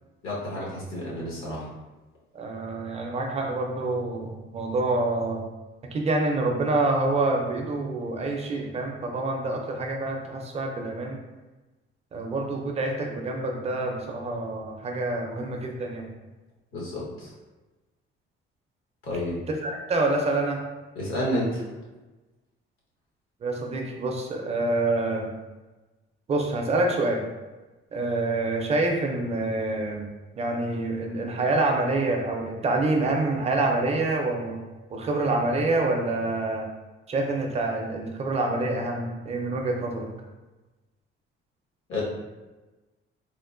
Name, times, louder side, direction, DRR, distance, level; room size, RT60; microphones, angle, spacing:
voice 1, 0.2-1.7 16.7-17.3 19.0-19.4 20.9-21.6 41.9-42.0, left 1 dB, 75° left, -6 dB, 1.2 m, -30 dB
voice 2, 2.3-5.4 5.9-11.2 12.1-16.1 19.5-20.6 23.4-25.3 26.3-27.2 27.9-30.0 30.4-34.6 34.9-36.7 37.1-40.1, right 2 dB, 30° right, 1 dB, 0.4 m, -27 dB
3.5 x 2.5 x 2.5 m, 1.1 s
cardioid pair, 155°, 21 cm